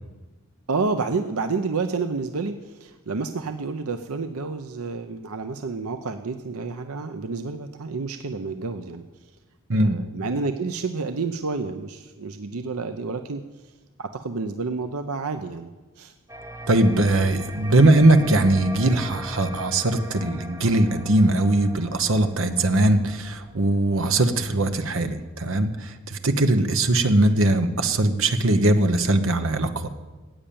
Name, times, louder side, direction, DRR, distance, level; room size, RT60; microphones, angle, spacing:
voice 1, 0.7-9.0 9.8-13.4 14.0-15.7 16.0-16.1, right 4 dB, 90° right, 8 dB, 0.7 m, -29 dB
sound 1, 16.3-25.3, equal, 15° right, 0.7 m, -40 dB
voice 2, 16.7-29.9, right 2 dB, 70° right, 8 dB, 1.1 m, -20 dB
14.5 x 8.9 x 8.6 m, 1.2 s
head